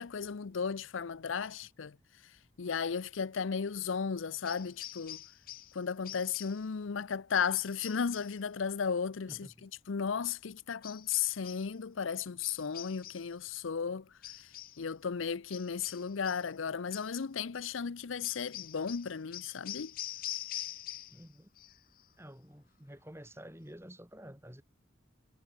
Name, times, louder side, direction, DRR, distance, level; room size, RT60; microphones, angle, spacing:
voice 1, 0.0-2.0 2.6-5.2 5.7-14.1 14.8-19.9, left 6 dB, 85° left, 0.6 m, -35 dB
sound 1, 4.4-5.8 6.0-6.7 7.5-8.4 10.8-11.7 12.4-13.3 14.2-14.8 15.5-16.5 16.9-17.2 18.2-21.3 21.6-22.0, left 13 dB, 45° left, 0.9 m, -45 dB
voice 2, 9.3-9.6 21.1-21.5 22.2-24.6, equal, 15° right, 7.1 m, -50 dB
head